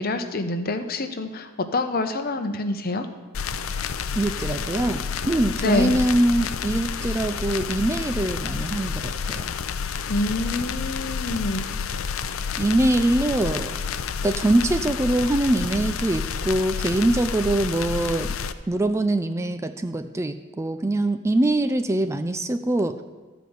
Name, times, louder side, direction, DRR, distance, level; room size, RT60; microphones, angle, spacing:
voice 1, 0.0-3.1 5.6-6.0 10.1-11.6, left 2 dB, 45° left, 7 dB, 0.8 m, -26 dB
sound 1, 3.3-18.5, left 6 dB, 75° left, 0.5 m, -29 dB
voice 2, 4.2-9.5 12.6-13.8 14.2-18.4 18.7-23.0, right 1 dB, 15° right, 9 dB, 0.4 m, -23 dB
13.5 x 5.0 x 7.9 m, 1.3 s
head